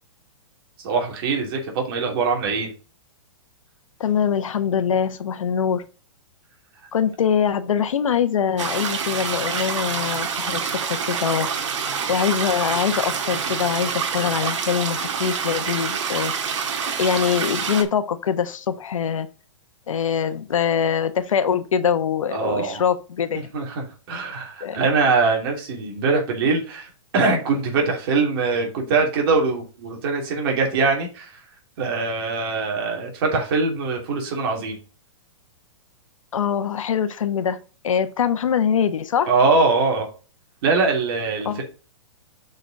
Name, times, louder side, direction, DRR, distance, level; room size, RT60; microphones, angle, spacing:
voice 1, 0.8-2.7 22.3-22.8 23.3-31.4 31.8-34.8 39.3-40.1 40.6-41.6, right 4 dB, 45° right, 2.9 m, -22 dB
voice 2, 4.0-5.8 6.9-11.5 12.1-16.3 17.0-19.3 19.9-23.5 24.6-24.8 36.3-37.6 37.8-39.3 41.4-41.6, left 7 dB, 90° left, 1.0 m, -23 dB
sound 1, 8.6-17.8, right 6 dB, 70° right, 1.8 m, -26 dB
6.3 x 4.9 x 5.1 m
hypercardioid pair, 150°, 16 cm